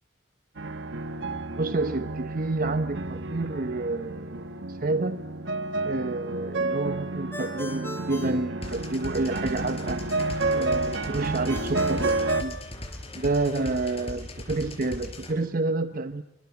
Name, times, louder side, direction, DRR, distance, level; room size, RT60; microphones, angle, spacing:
sound 1, 0.6-12.4, right 2 dB, 70° right, 1.3 m, -30 dB
voice 1, 1.5-5.2 5.8-10.0 10.5-12.6 13.1-16.2, right 2 dB, 50° right, 10 dB, 0.9 m, -29 dB
Ringtone, 7.3-9.3 11.5-13.4, left 1 dB, 15° left, 7.1 m, -39 dB
sound 2, 8.6-15.3, left 1 dB, 35° left, 4.6 m, -39 dB
26.5 x 24.0 x 7.1 m, 0.85 s
head